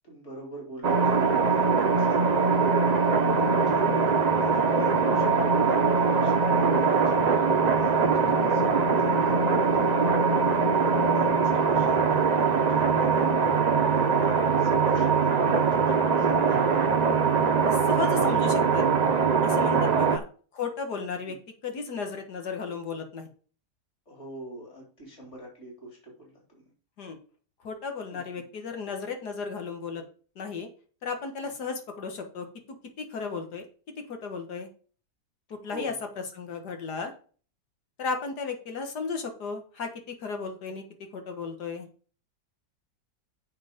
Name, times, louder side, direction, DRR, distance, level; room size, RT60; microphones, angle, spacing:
voice 1, 0.0-2.7 3.4-13.5 13.9-17.0 21.3-21.4 24.1-26.7 28.1-28.4 31.4-31.5 35.6-36.0, right 1 dB, 45° left, -1 dB, 4.1 m, -43 dB
sound 1, 0.8-20.2, right 5 dB, 65° right, 0.4 m, -22 dB
voice 2, 17.7-18.9 19.4-20.2 20.5-21.4 21.6-23.3 27.0-27.2 27.6-30.0 30.4-30.7 31.0-32.5 33.0-33.6 34.1-34.7 35.5-35.9 36.3-37.1 38.0-40.8 41.1-41.9, left 5 dB, 75° left, 5 dB, 2.2 m, -34 dB
7.9 x 6.0 x 5.2 m, 0.40 s
omnidirectional pair, 1.7 m